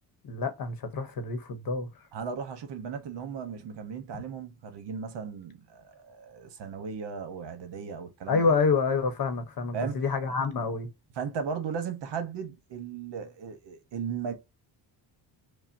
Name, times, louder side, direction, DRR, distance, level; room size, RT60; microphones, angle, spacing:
voice 1, 0.2-1.9 4.1-4.2 8.3-10.9, left 4 dB, 50° left, 0.8 m, -27 dB
voice 2, 2.1-8.5 9.7-10.0 11.2-14.3, right 6 dB, 65° right, 0.9 m, -36 dB
5.5 x 2.0 x 2.5 m
cardioid pair, 150°, 46 cm